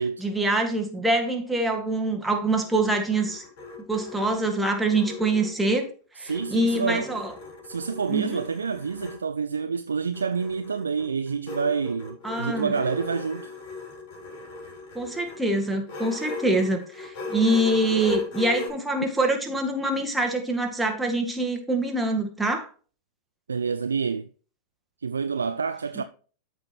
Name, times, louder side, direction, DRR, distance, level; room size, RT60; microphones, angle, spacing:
voice 1, 0.2-3.4 3.9-5.9 6.2-7.3 8.1-8.4 12.2-12.7 15.0-22.7, right 2 dB, 5° right, 1.7 m, -25 dB
sound 1, 2.6-5.9 6.3-9.2 10.1-18.7, left 3 dB, 45° left, 3.9 m, -37 dB
voice 2, 6.2-7.2 7.6-13.5 23.5-24.3 25.0-26.0, right 5 dB, 75° right, 0.4 m, -28 dB
13.5 x 4.6 x 3.0 m
figure-of-eight pair, 90°, 0 cm